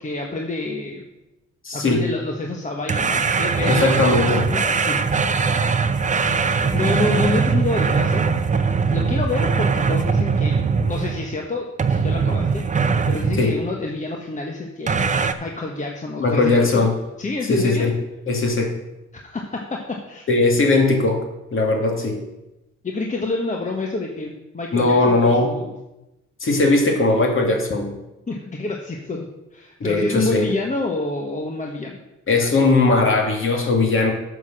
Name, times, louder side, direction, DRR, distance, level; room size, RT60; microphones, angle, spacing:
voice 1, 0.0-1.0 1.7-4.1 4.3-5.0 6.4-15.0 15.4-16.8 17.2-17.8 19.1-20.2 22.8-25.7 28.3-29.3 29.5-32.0, left 2 dB, 25° left, 0 dB, 1.2 m, -28 dB
voice 2, 1.6-2.0 3.7-4.4 13.4-13.5 16.2-16.9 17.5-17.9 18.3-18.7 20.3-21.2 21.5-22.2 24.7-25.5 26.4-27.9 29.8-30.5 32.3-34.1, left 3 dB, 45° left, 1 dB, 2.4 m, -18 dB
sound 1, 2.9-11.4 11.8-13.5 14.9-15.3, right 5 dB, 25° right, 0.7 m, -21 dB
9.0 x 6.1 x 6.3 m, 0.97 s
cardioid pair, 90°, 30 cm